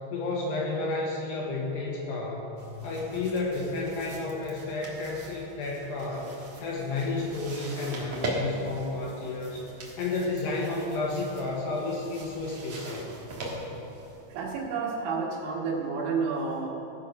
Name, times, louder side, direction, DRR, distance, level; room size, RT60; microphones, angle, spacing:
voice 1, 0.1-2.5 2.8-6.3 6.6-13.2, left 3 dB, 70° left, -2 dB, 3.1 m, -31 dB
sound 1, 2.6-14.7, right 1 dB, 60° right, 1.4 m, -40 dB
voice 2, 14.3-16.7, right 4 dB, 80° right, -5 dB, 3.9 m, -30 dB
16.0 x 6.4 x 5.3 m, 2.9 s
omnidirectional pair, 5.3 m